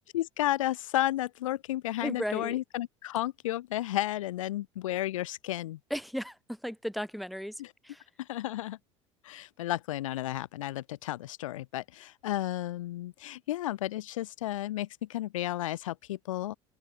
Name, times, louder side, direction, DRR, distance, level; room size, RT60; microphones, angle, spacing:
voice 1, 0.1-5.8 7.6-7.7 8.2-8.8 9.2-16.5, left 14 dB, 75° left, 0.6 m, -32 dB
voice 2, 2.0-2.6 5.9-8.0, equal, ahead, 1.1 m, -35 dB
figure-of-eight pair, 70°, 17 cm